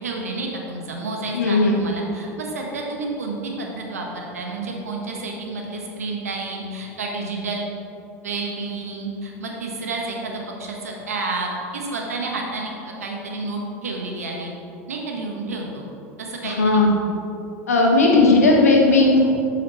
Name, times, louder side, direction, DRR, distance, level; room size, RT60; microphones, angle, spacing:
voice 1, 0.0-7.7 8.2-14.5 14.9-15.9 16.2-16.8, right 3 dB, 90° right, 0 dB, 1.4 m, -30 dB
voice 2, 1.3-1.8 16.4-16.9 17.7-19.3, left 2 dB, 90° left, -1 dB, 1.5 m, -16 dB
11.0 x 5.0 x 4.3 m, 2.7 s
hypercardioid pair, 80°, 8 cm